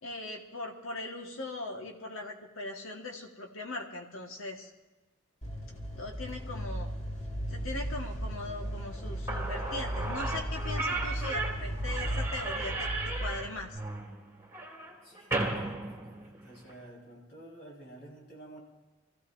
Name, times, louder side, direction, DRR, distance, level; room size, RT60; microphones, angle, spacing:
voice 1, 0.0-4.7 6.0-6.9 7.5-12.9 13.2-13.8, left 2 dB, 80° left, 1 dB, 1.7 m, -40 dB
sound 1, 5.4-13.8, equal, 35° left, 1.9 m, -36 dB
Slam / Squeak, 9.0-9.1 9.3-16.8, right 2 dB, 15° right, 2.3 m, -35 dB
voice 2, 15.0-18.6, right 1 dB, 50° left, -3 dB, 5.2 m, -51 dB
25.0 x 15.5 x 2.7 m, 1.1 s
head